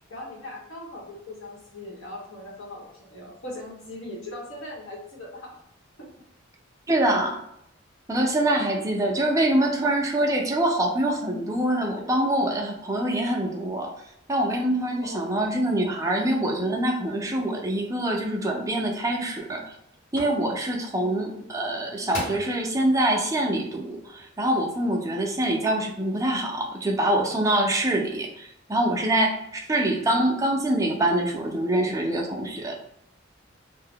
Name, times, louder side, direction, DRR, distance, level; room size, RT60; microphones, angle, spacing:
voice 1, 0.1-5.6 6.0-6.1 8.7-8.8 15.0-15.3 20.9-21.3 25.4-25.5 27.9-28.0, left 1 dB, 90° left, -4 dB, 1.2 m, -40 dB
voice 2, 6.9-7.4 8.1-13.9 14.3-19.7 20.1-32.8, right 1 dB, 15° right, 1 dB, 0.4 m, -25 dB
sound 1, 18.8-18.9 19.5-19.8 20.2-20.4 21.6-21.7 22.1-22.6 23.1-23.2, equal, 40° left, 1.1 m, -34 dB
2.6 x 2.2 x 3.6 m, 0.77 s
head